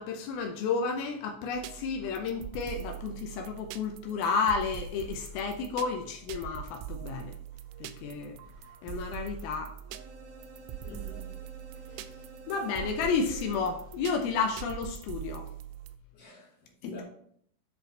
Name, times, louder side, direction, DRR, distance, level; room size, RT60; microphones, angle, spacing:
voice 1, 0.0-7.4 7.8-8.4 8.8-9.7 12.5-15.5 16.8-16.9, left 5 dB, 85° left, 2.1 m, -31 dB
sound 1, 1.5-16.0, right 9 dB, 85° right, 2.6 m, -43 dB
sound 2, 9.9-14.1, right 1 dB, 65° right, 3.2 m, -51 dB
voice 2, 10.8-11.4 11.9-12.3 16.1-17.0, left 2 dB, 60° left, 1.7 m, -48 dB
10.0 x 4.2 x 3.9 m
omnidirectional pair, 5.1 m